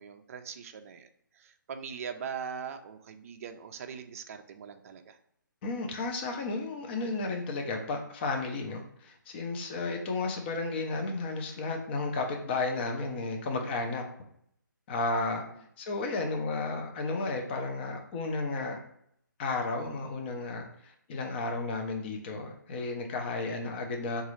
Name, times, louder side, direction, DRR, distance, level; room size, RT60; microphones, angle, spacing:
voice 1, 0.0-5.2 15.4-15.6, right 7 dB, 45° right, 7 dB, 0.3 m, -41 dB
voice 2, 5.6-14.0 14.9-15.4 15.8-18.8 19.4-24.2, left 3 dB, 30° left, 3 dB, 0.5 m, -33 dB
3.9 x 2.4 x 3.0 m, 0.71 s
hypercardioid pair, 150°, 11 cm